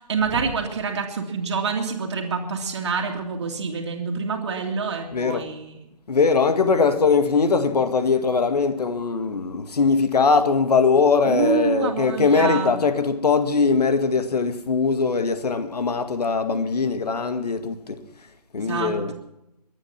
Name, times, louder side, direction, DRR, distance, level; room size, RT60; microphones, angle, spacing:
voice 1, 0.0-5.7 11.3-12.8 18.6-19.1, right 5 dB, 40° right, 2.3 m, -26 dB
voice 2, 5.1-5.5 6.1-18.0 18.5-19.1, left 4 dB, 70° left, 2.0 m, -21 dB
23.0 x 9.4 x 5.8 m
hypercardioid pair, 175°, 21 cm